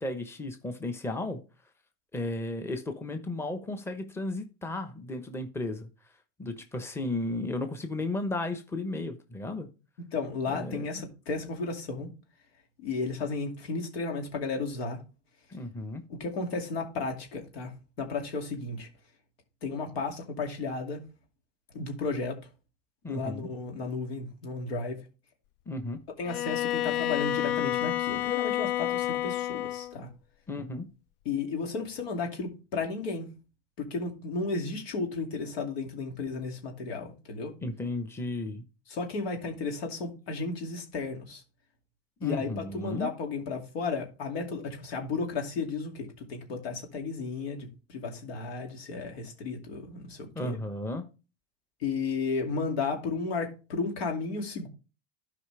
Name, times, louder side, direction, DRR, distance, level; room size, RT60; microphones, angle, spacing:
voice 1, 0.0-1.4 2.1-5.9 6.4-9.7 10.5-10.8 15.5-16.0 23.0-23.5 25.7-26.0 30.5-30.9 37.6-38.6 42.2-43.1 50.3-51.0, left 2 dB, 10° left, 1.0 m, -34 dB
voice 2, 10.1-12.1 12.8-15.0 16.1-17.7 18.0-18.9 19.6-21.0 21.7-22.4 23.1-25.0 26.2-30.1 31.2-33.3 33.8-37.5 38.9-41.4 42.2-50.6 51.8-54.7, left 4 dB, 90° left, 2.5 m, -33 dB
Bowed string instrument, 26.2-30.0, left 13 dB, 60° left, 0.5 m, -29 dB
12.5 x 5.0 x 3.3 m
supercardioid pair, 130°, 30 cm